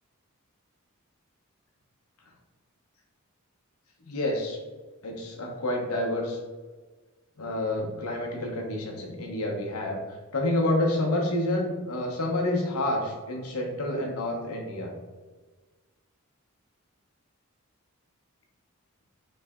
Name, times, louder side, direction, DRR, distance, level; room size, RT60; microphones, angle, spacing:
voice 1, 4.0-4.6 5.0-6.4 7.4-10.0 10.3-14.9, left 1 dB, 80° left, 0 dB, 0.9 m, -28 dB
3.3 x 3.2 x 3.6 m, 1.3 s
head